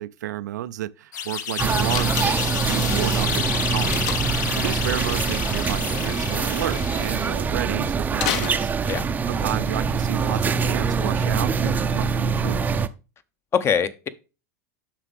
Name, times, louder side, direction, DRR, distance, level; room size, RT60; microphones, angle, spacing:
voice 1, 0.0-4.0 4.5-8.7 9.3-12.8, right 13 dB, 90° right, 0.5 m, -31 dB
sound 1, 1.1-7.5, left 8 dB, 85° left, 0.8 m, -30 dB
sound 2, 1.6-12.9, right 5 dB, 20° right, 0.5 m, -24 dB
Slam, 1.9-2.6 3.9-4.5 8.1-9.2, left 9 dB, 60° left, 1.0 m, -30 dB
voice 2, 13.5-14.1, left 7 dB, 25° left, 0.7 m, -24 dB
7.5 x 5.9 x 3.4 m
supercardioid pair, 120°, 9 cm